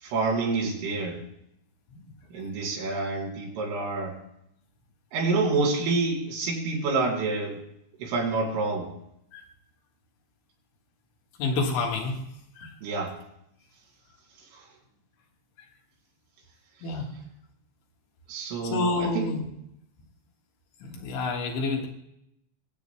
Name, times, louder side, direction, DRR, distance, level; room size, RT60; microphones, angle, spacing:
voice 1, 0.0-1.2 2.3-4.1 5.1-7.6 8.0-8.9 12.8-13.1 14.5-14.6 18.3-19.3, right 3 dB, 85° right, -3 dB, 5.9 m, -28 dB
voice 2, 11.4-12.2 12.6-12.7 16.8-17.1 18.7-19.5 20.8-21.9, left 3 dB, 75° left, 0 dB, 3.8 m, -28 dB
24.0 x 8.8 x 2.2 m, 0.77 s
omnidirectional pair, 5.5 m